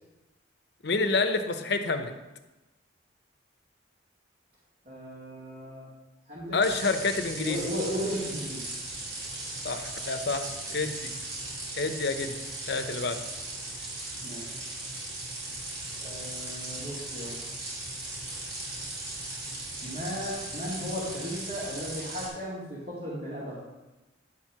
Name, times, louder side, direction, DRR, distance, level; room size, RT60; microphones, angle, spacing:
voice 1, 0.8-2.1 6.5-7.7 9.6-11.1 11.8-12.3 12.7-13.2, left 3 dB, 55° left, 7 dB, 0.7 m, -28 dB
voice 2, 4.9-5.9 6.3-6.6 7.4-8.6 14.2-14.4 16.0-17.4 19.8-23.5, equal, 50° right, -10 dB, 2.3 m, -35 dB
sound 1, 6.6-22.3, right 2 dB, 75° right, 3.5 m, -38 dB
9.9 x 4.6 x 6.0 m, 1.1 s
head